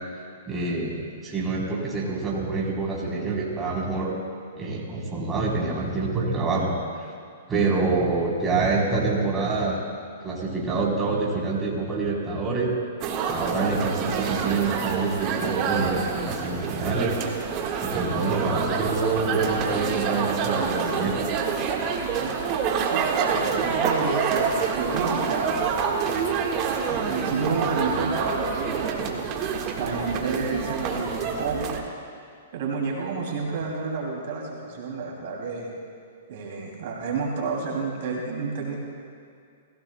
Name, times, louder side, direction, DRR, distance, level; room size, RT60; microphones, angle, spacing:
voice 1, 0.5-4.1 4.6-6.7 7.5-9.8 10.2-12.7 13.3-17.2 17.8-21.2, right 3 dB, 15° right, -5 dB, 3.6 m, -26 dB
sound 1, 13.0-31.8, right 6 dB, 35° right, 1.5 m, -27 dB
voice 2, 22.8-26.1 26.9-29.5 29.8-31.7 32.5-35.7 36.3-38.8, right 4 dB, 60° right, -2 dB, 2.7 m, -30 dB
23.5 x 16.5 x 2.2 m, 2.3 s
hypercardioid pair, 130°, 0 cm